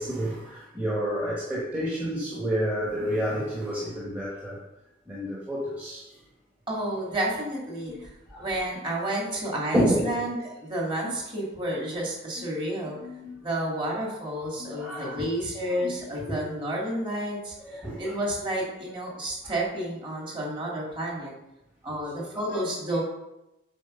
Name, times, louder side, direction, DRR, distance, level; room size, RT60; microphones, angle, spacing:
voice 1, 0.0-4.6 5.1-6.1 7.9-8.0 8.3-8.5 9.7-10.2 12.9-13.4 14.6-15.3 15.7-15.9 17.7-18.2 22.2-22.6, equal, 10° right, -6 dB, 1.2 m, -30 dB
voice 2, 6.7-8.1 8.4-13.0 13.4-17.5 18.0-21.3 21.8-23.0, right 1 dB, 25° right, -3 dB, 2.3 m, -30 dB
7.6 x 4.7 x 5.5 m, 0.93 s
head